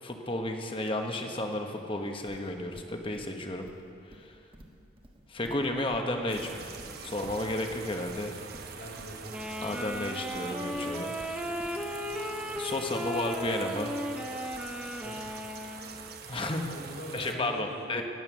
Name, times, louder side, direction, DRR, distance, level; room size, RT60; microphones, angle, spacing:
voice 1, 0.0-3.7 4.1-4.4 5.3-6.7 7.0-8.4 9.6-11.1 12.6-14.0 16.3-16.6 17.1-18.0, left 1 dB, 25° left, 4 dB, 1.1 m, -32 dB
Livestock farm animals working animals, 2.3-13.1, right 1 dB, 25° right, 1.3 m, -52 dB
sound 1, 6.3-17.4, right 5 dB, 50° right, 1.0 m, -45 dB
voice 2, 8.7-9.3 15.0-15.3 16.6-18.0, equal, 55° left, -2 dB, 2.9 m, -43 dB
Wind instrument woodwind instrument, 9.3-16.2, equal, 5° right, 0.9 m, -36 dB
20.5 x 8.9 x 6.2 m, 2.7 s
head